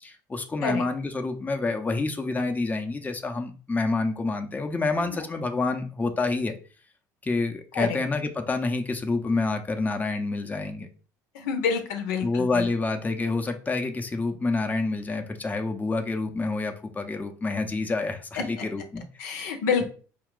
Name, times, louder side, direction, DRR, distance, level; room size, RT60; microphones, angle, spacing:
voice 1, 0.0-6.6 7.2-10.9 12.2-19.5, left 3 dB, 15° left, 5 dB, 0.6 m, -28 dB
voice 2, 11.3-12.7 18.3-18.4 19.2-19.8, left 6 dB, 80° left, 5 dB, 0.7 m, -27 dB
4.5 x 2.3 x 3.7 m, 0.39 s
hypercardioid pair, 70°, 9 cm